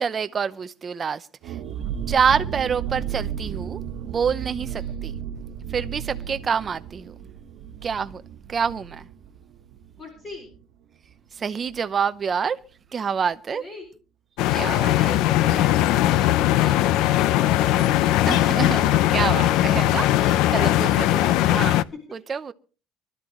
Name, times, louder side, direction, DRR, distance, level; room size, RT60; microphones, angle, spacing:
voice 1, 0.0-1.6 2.1-5.1 5.7-7.1 7.8-8.2 8.5-9.1 11.3-12.6 12.9-13.6 14.5-15.1 18.3-21.1 21.5-21.8 22.1-22.5, right 6 dB, 25° right, 0.7 m, -27 dB
sound 1, 1.4-10.8 11.1-11.2 11.5-11.8, right 9 dB, 60° right, 1.6 m, -34 dB
voice 2, 10.0-10.5 13.6-13.9 14.4-18.9 20.6-21.6, left 1 dB, 25° left, 4.6 m, -39 dB
sound 2, 14.4-21.8, left 14 dB, 70° left, 0.6 m, -20 dB
24.5 x 12.5 x 3.1 m
cardioid pair, 160°, 0 cm